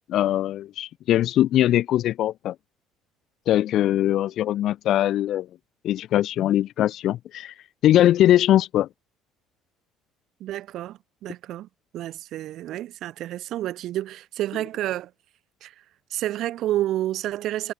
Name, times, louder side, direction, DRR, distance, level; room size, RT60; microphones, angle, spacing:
voice 1, 0.1-2.5 3.5-5.5 5.8-7.5 7.8-8.9, left 12 dB, 50° left, 0.6 m, -21 dB
voice 2, 10.4-11.7 11.9-15.1 15.6-15.8 16.1-17.7, right 13 dB, 55° right, 1.5 m, -29 dB
cardioid pair, 160°, 0 cm